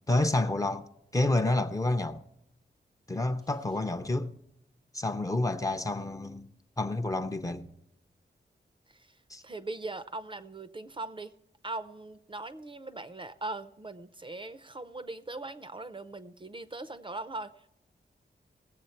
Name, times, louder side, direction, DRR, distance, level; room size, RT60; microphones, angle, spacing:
voice 1, 0.1-0.8 1.1-2.2 3.1-4.3 4.9-6.5 6.8-7.7 9.3-9.4, left 2 dB, 20° left, 0.6 m, -29 dB
voice 2, 8.9-11.3 11.6-17.7, right 2 dB, 25° right, 0.6 m, -40 dB
19.0 x 7.8 x 4.4 m
wide cardioid pair, 150°, 19 cm